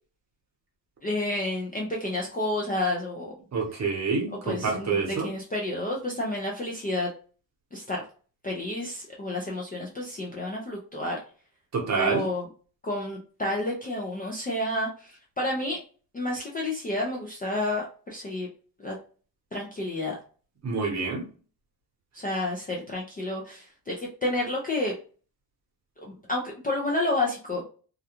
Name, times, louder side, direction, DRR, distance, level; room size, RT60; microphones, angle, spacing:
voice 1, 1.0-3.4 4.4-5.0 5.2-7.1 7.7-8.0 8.4-11.2 11.9-12.5 12.8-15.8 16.1-18.5 18.8-18.9 19.5-20.2 22.1-24.9 26.0-27.6, left 1 dB, 20° left, -3 dB, 0.3 m, -30 dB
voice 2, 3.5-5.3 11.7-12.2 20.6-21.2, right 4 dB, 40° right, 0 dB, 0.9 m, -27 dB
2.4 x 2.2 x 2.9 m, 0.39 s
wide cardioid pair, 165°, 43 cm